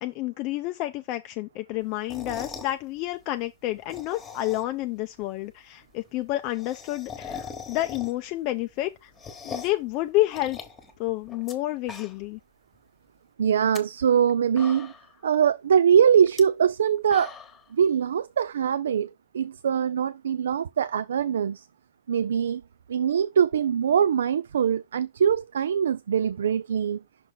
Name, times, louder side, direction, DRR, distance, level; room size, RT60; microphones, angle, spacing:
voice 1, 0.0-9.1 9.4-10.6 11.0-12.4, left 16 dB, 35° left, 0.4 m, -29 dB
sound 1, 2.0-2.7 3.7-4.8 5.2-5.3 5.5-5.6 5.8-5.9 6.2-8.4 8.7-9.8 10.3-11.5 11.8-12.4 12.7-12.8 13.5-13.8 14.3-14.4 14.6-15.2 16.2-16.4 16.8-17.6, left 6 dB, 15° left, 1.2 m, -41 dB
voice 2, 13.4-14.9 15.2-17.3 17.7-21.7 22.1-22.6 22.9-27.0, right 8 dB, 85° right, 0.3 m, -23 dB
6.0 x 4.3 x 3.9 m
hypercardioid pair, 145°, 0 cm